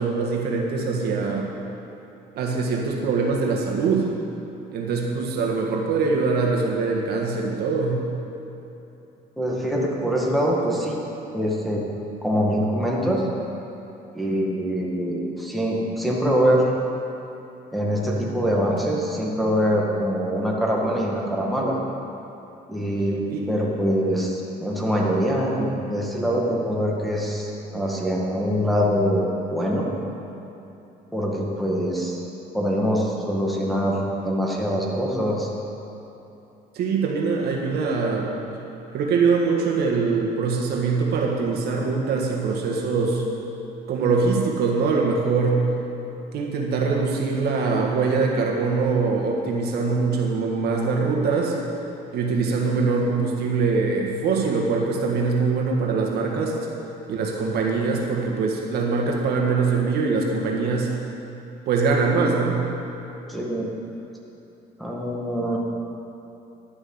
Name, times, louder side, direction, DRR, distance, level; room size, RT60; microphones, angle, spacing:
voice 1, 0.0-1.5 2.3-4.1 4.7-8.0 23.3-23.5 36.7-38.3 38.9-43.2 43.9-45.6 46.3-51.5 52.1-56.5 57.1-60.9 61.7-62.6, right 4 dB, 70° right, -1 dB, 1.7 m, -23 dB
voice 2, 9.4-11.0 11.3-11.8 12.2-13.3 14.1-16.6 17.7-21.8 22.7-29.8 31.1-32.2 32.5-35.5 63.3-63.7 64.8-65.6, equal, ahead, -4 dB, 1.9 m, -24 dB
11.5 x 6.4 x 7.9 m, 3.0 s
cardioid pair, 110°, 17 cm